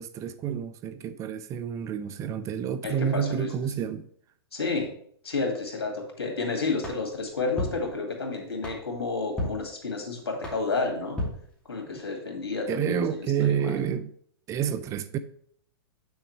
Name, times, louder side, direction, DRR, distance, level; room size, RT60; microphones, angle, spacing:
voice 1, 0.0-4.1 12.7-14.1 14.5-15.2, right 8 dB, 25° right, 0.4 m, -29 dB
voice 2, 2.8-3.5 4.5-4.9 5.2-11.2 11.7-13.8, left 3 dB, 90° left, 2.2 m, -31 dB
sound 1, 6.8-12.1, left 1 dB, 10° left, 2.5 m, -38 dB
7.9 x 6.3 x 3.2 m
hypercardioid pair, 125°, 13 cm